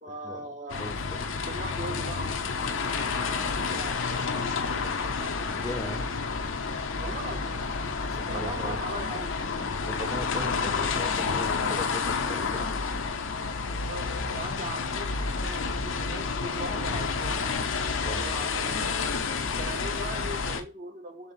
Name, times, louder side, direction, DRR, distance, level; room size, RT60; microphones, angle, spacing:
voice 1, 0.0-0.9 1.4-6.2 7.0-7.7 8.3-9.3 11.4-11.8 12.3-12.7 13.7-17.4 18.1-18.9 19.6-21.3, right 1 dB, 35° right, 0.7 m, -41 dB
sound 1, 0.7-20.6, left 4 dB, 75° left, 0.7 m, -30 dB
voice 2, 0.8-1.3 5.6-6.0 8.1-8.8 9.9-12.6 16.7-16.8 18.0-18.2, left 1 dB, 15° left, 0.7 m, -38 dB
5.3 x 3.5 x 2.7 m
head